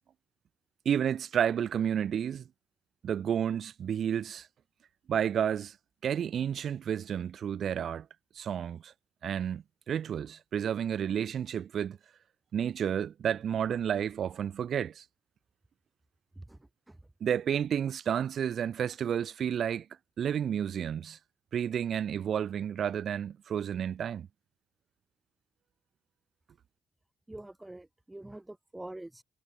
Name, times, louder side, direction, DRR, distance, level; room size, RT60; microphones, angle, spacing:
voice 1, 0.8-2.4 3.0-4.5 5.1-5.7 6.0-8.1 8.3-8.9 9.2-12.0 12.5-15.0 17.2-19.9 20.2-21.2 21.5-24.3, right 8 dB, 60° right, 1.1 m, -31 dB
voice 2, 27.3-29.2, right 1 dB, 10° right, 5.9 m, -45 dB
cardioid pair, 90°, 0 cm